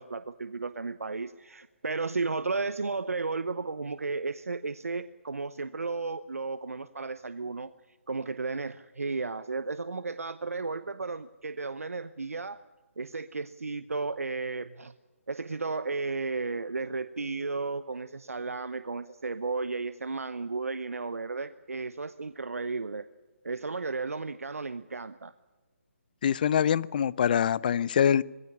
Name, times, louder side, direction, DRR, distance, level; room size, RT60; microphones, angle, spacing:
voice 1, 0.0-7.7 8.1-12.6 13.0-14.9 15.3-23.1 23.4-25.3, right 4 dB, 85° right, 0.9 m, -34 dB
voice 2, 26.2-28.2, left 8 dB, 40° left, 0.6 m, -24 dB
21.0 x 16.0 x 9.8 m
figure-of-eight pair, 155°, 8 cm